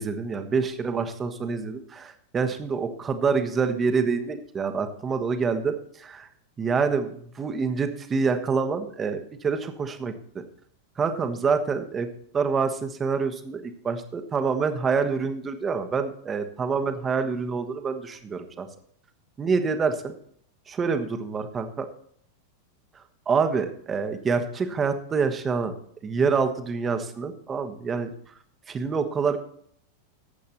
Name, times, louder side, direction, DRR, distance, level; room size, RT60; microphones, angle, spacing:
voice 1, 0.0-6.3 6.6-10.1 11.0-12.1 12.3-18.7 19.4-20.1 20.7-21.9 22.9-25.7 26.0-28.3 28.7-29.4, right 5 dB, 20° right, 8 dB, 1.4 m, -26 dB
19.0 x 8.3 x 3.0 m, 0.63 s
figure-of-eight pair, 90°, 0 cm